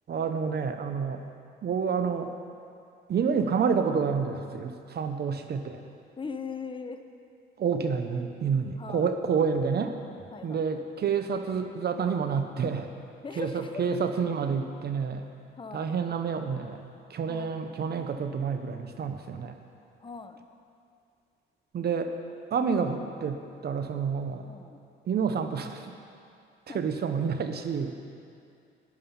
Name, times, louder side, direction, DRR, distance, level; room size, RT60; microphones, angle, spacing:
voice 1, 0.1-1.2 1.6-2.3 3.1-5.8 7.6-10.0 10.4-12.9 13.4-15.3 15.7-19.6 21.7-22.1 22.5-24.5 25.1-25.9 26.7-27.9, right 6 dB, 55° right, 7 dB, 0.8 m, -29 dB
voice 2, 6.2-7.0 8.8-9.1 10.3-10.8 13.2-13.9 15.6-15.9 17.3-17.6 20.0-20.4 24.5-24.8 26.7-26.8, left 5 dB, 25° left, 7 dB, 0.8 m, -39 dB
11.5 x 11.0 x 5.6 m, 2.5 s
cardioid pair, 90°, 20 cm